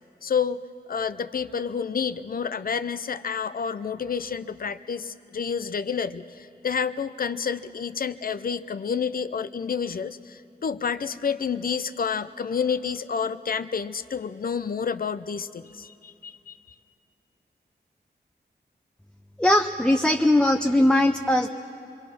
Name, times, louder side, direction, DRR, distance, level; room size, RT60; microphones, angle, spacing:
voice 1, 0.2-0.6 0.9-16.6, left 6 dB, 60° left, 13 dB, 0.6 m, -29 dB
voice 2, 19.4-21.5, left 1 dB, 5° left, 4 dB, 0.6 m, -20 dB
27.0 x 23.5 x 6.0 m, 2.8 s
wide cardioid pair, 135°, 17 cm